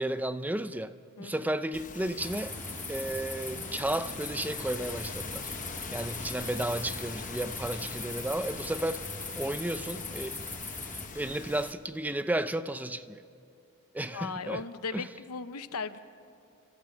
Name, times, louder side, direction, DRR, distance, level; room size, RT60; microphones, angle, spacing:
voice 1, 0.0-2.6 2.9-5.5 5.9-9.0 9.4-10.4 11.1-13.2 13.9-14.6 14.9-15.1, right 1 dB, 5° right, 0.5 m, -33 dB
sound 1, 1.7-11.7, left 5 dB, 35° left, 0.9 m, -43 dB
sound 2, 2.2-11.1, left 2 dB, 10° left, 2.1 m, -40 dB
voice 2, 14.1-16.0, left 4 dB, 90° left, 0.8 m, -37 dB
29.0 x 13.5 x 7.2 m
head